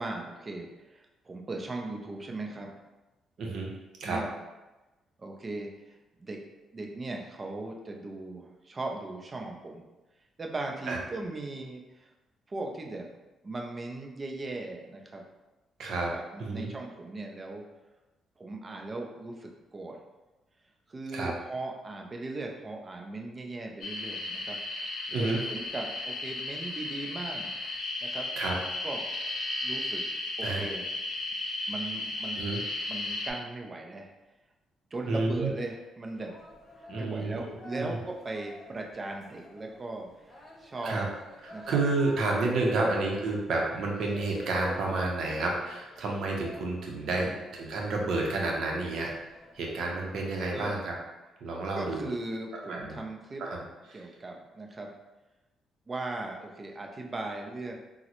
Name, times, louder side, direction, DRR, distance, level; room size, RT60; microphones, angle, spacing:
voice 1, 0.0-2.8 4.0-4.3 5.2-5.7 6.2-6.4 6.7-9.8 10.4-12.1 12.5-13.1 13.4-15.2 16.1-17.6 18.4-20.0 20.9-24.6 25.2-27.5 28.0-28.3 28.8-29.0 29.6-30.0 30.4-30.8 31.7-32.4 32.9-34.1 34.9-36.4 37.0-40.1 40.6-41.1 41.5-41.8 42.7-42.9 47.2-47.5 50.5-50.8 51.8-53.4 53.9-54.9 55.9-57.7, right 2 dB, 30° right, 1 dB, 0.5 m, -38 dB
voice 2, 3.4-3.7 4.0-4.2 10.9-11.0 15.8-16.1 16.4-16.7 21.1-21.3 25.1-25.4 28.4-28.5 30.4-30.7 32.3-32.6 35.1-35.5 36.9-37.4 37.7-38.0 40.8-41.1 41.4-49.1 49.6-50.9 51.4-52.1 52.6-53.0 53.4-53.6 53.9-54.0, right 3 dB, 70° right, -1 dB, 0.7 m, -30 dB
sound 1, 23.8-33.3, left 2 dB, 70° left, 0.6 m, -35 dB
sound 2, 36.1-50.3, left 1 dB, 35° left, 0.8 m, -46 dB
3.6 x 2.1 x 2.9 m, 1.1 s
cardioid pair, 90°, 0 cm